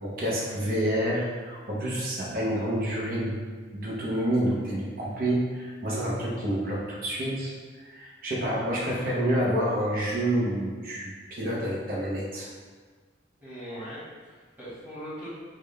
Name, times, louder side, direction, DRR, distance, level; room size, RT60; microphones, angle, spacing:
voice 1, 0.0-3.4 3.7-7.5 7.8-12.5, right 1 dB, 45° right, -5 dB, 0.8 m, -28 dB
voice 2, 13.4-15.3, equal, 10° right, -12 dB, 1.5 m, -40 dB
3.6 x 2.2 x 3.4 m, 1.5 s
head